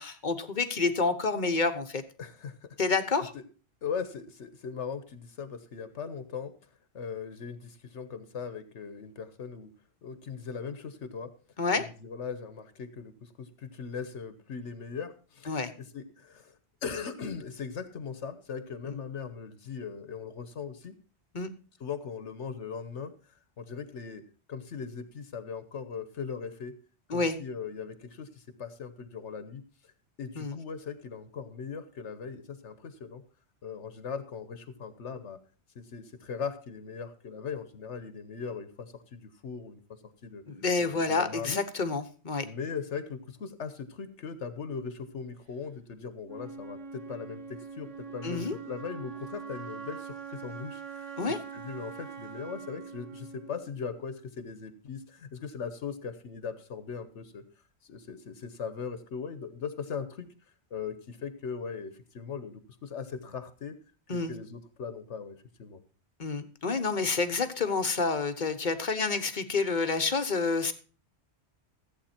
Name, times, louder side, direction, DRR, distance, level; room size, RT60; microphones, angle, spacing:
voice 1, 0.0-2.0 2.8-3.3 11.6-11.8 15.5-15.7 21.3-21.5 27.1-27.4 30.4-30.6 40.5-42.4 48.2-48.6 51.2-51.4 64.1-64.3 66.2-70.7, left 4 dB, 45° left, 8 dB, 1.1 m, -28 dB
voice 2, 2.2-2.8 3.8-6.5 6.9-9.7 10.0-11.3 11.8-21.0 21.8-24.2 24.5-26.7 27.1-29.6 30.2-33.2 33.6-35.4 35.7-40.4 40.8-41.6 42.4-51.1 51.5-57.4 57.8-60.3 60.7-63.7 64.1-65.8, left 6 dB, 75° left, 11 dB, 1.3 m, -39 dB
Wind instrument woodwind instrument, 46.3-54.3, right 6 dB, 85° right, 1.7 m, -43 dB
14.5 x 8.2 x 4.3 m, 0.38 s
omnidirectional pair, 1.2 m